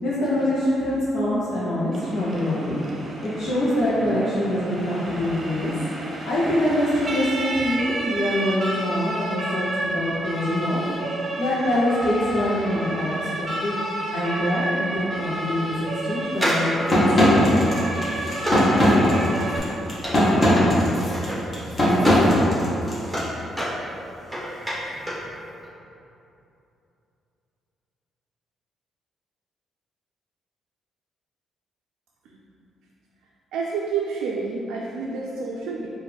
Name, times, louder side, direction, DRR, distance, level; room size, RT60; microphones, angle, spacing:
voice 1, 0.0-2.8 3.2-5.7 6.2-10.8 11.4-13.8 14.1-15.7 16.0-17.5, left 1 dB, 70° left, -10 dB, 0.9 m, -24 dB
Siren, 1.9-19.6, right 1 dB, 35° right, 0.7 m, -31 dB
sound 1, 16.3-22.3 22.6-25.3 25.6-25.7, equal, ahead, 1.2 m, -30 dB
sound 2, 16.9-23.2, equal, 30° left, 1.1 m, -19 dB
voice 2, 33.5-35.9, right 4 dB, 85° right, -3 dB, 0.3 m, -29 dB
4.8 x 2.6 x 3.3 m, 2.8 s
cardioid pair, 90°, 0 cm